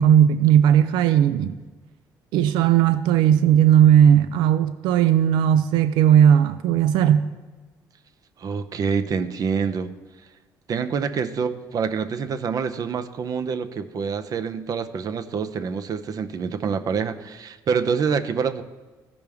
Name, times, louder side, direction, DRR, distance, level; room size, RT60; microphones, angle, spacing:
voice 1, 0.0-1.5 2.3-7.3, right 9 dB, 85° right, 0.4 m, -17 dB
voice 2, 8.4-9.9 10.7-18.6, right 6 dB, 55° right, 0.7 m, -26 dB
14.0 x 5.1 x 3.5 m
supercardioid pair, 75°, 8 cm